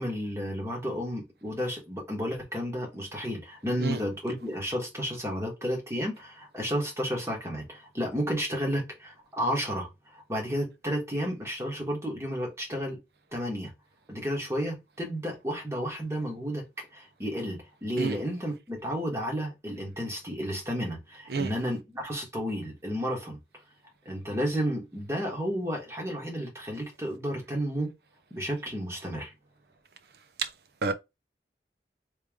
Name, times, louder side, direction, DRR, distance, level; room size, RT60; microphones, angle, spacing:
voice 1, 0.0-13.0 13.3-13.7 14.1-23.4 24.0-27.9 28.3-29.3, equal, 15° right, 1.4 m, -32 dB
voice 2, 3.8-4.0 18.0-18.1 21.3-21.5 30.8-30.9, right 4 dB, 65° right, 0.6 m, -28 dB
3.2 x 3.2 x 3.5 m
head